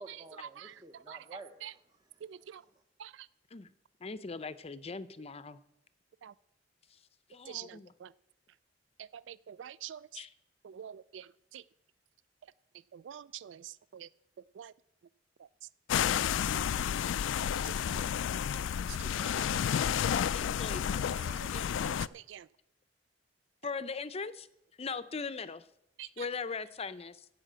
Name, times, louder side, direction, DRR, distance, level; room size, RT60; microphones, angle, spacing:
voice 1, 0.0-2.8, right 2 dB, 20° right, 0.9 m, -52 dB
voice 2, 2.2-2.6 3.0-3.3 6.2-6.3 7.5-8.1 9.0-10.1 10.6-11.6 12.9-14.1 14.6-14.7 16.5-16.6 17.6-18.1 18.5-18.6 18.9-19.9 21.3-21.5 21.8-22.5 26.0-26.1, right 10 dB, 75° right, 0.3 m, -46 dB
voice 3, 4.0-5.6 6.9-7.0 7.3-7.9 10.1-10.3 19.9-21.2 21.5-21.7 23.6-24.5 24.8-25.7 26.0-27.3, left 4 dB, 35° left, 0.6 m, -40 dB
sound 1, 15.9-22.1, left 9 dB, 85° left, 0.3 m, -31 dB
15.5 x 5.7 x 7.5 m
head